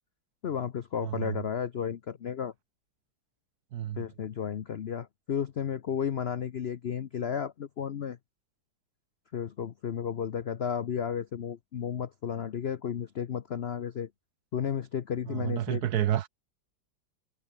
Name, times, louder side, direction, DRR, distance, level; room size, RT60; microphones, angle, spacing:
voice 1, 0.4-2.5 4.0-8.2 9.3-14.1 14.5-15.8, left 8 dB, 65° left, 0.6 m, -33 dB
voice 2, 1.0-1.4 3.7-4.0 15.3-16.3, right 11 dB, 65° right, 1.2 m, -30 dB
omnidirectional pair, 2.1 m